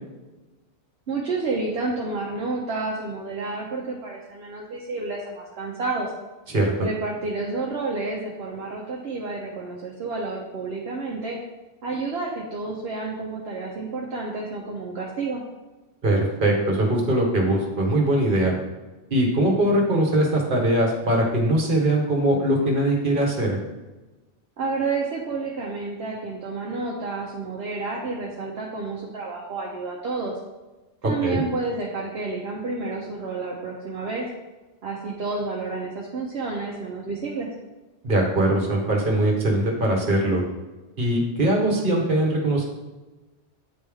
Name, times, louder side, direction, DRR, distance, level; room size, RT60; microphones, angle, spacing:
voice 1, 1.1-6.1 6.8-11.4 11.8-15.4 24.6-30.4 31.0-34.3 34.8-37.5, right 3 dB, 65° right, -3 dB, 1.0 m, -30 dB
voice 2, 16.0-18.5 19.1-23.6 31.2-31.4 38.0-40.4 41.0-42.7, right 1 dB, 50° right, 0 dB, 1.4 m, -21 dB
8.9 x 3.3 x 3.5 m, 1.1 s
omnidirectional pair, 1.2 m